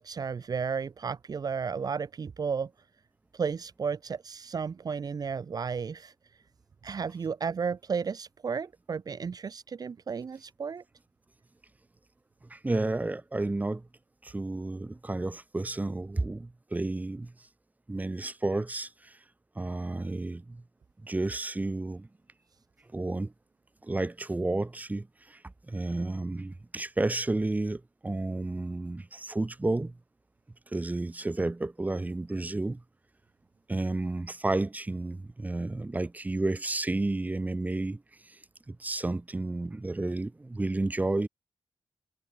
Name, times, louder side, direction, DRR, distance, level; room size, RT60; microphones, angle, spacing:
voice 1, 0.0-2.7 3.3-6.1 6.8-10.8, right 6 dB, 45° right, 1.2 m, -33 dB
voice 2, 12.5-13.9 14.2-17.3 17.9-19.2 19.6-20.6 21.0-22.1 22.9-23.3 23.8-25.4 25.7-29.9 30.7-32.8 33.7-38.4 38.7-41.3, right 2 dB, 20° right, 2.2 m, -31 dB
wide cardioid pair, 125°, 9 cm